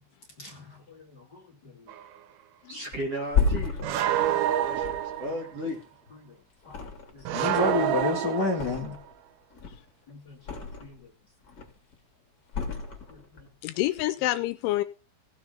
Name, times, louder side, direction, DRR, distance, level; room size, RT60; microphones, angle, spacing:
voice 1, 0.4-1.7 6.2-6.3 6.6-6.8 7.1-8.9 10.1-11.0 13.1-13.2, left 3 dB, 55° left, 1.1 m, -31 dB
sound 1, 1.9-2.1 3.8-5.5 7.3-9.0, right 11 dB, 85° right, 3.7 m, -28 dB
voice 2, 2.7-5.8, equal, 35° right, 3.2 m, -36 dB
Thump thud, 2.9-6.2 6.6-7.4 7.7-9.2 9.5-11.0 11.4-11.9 12.5-13.5 13.8-14.0, left 5 dB, 25° left, 2.4 m, -32 dB
voice 3, 4.2-4.5 9.7-9.8 13.6-14.8, left 15 dB, 80° left, 2.9 m, -28 dB
17.0 x 7.1 x 5.3 m
omnidirectional pair, 5.8 m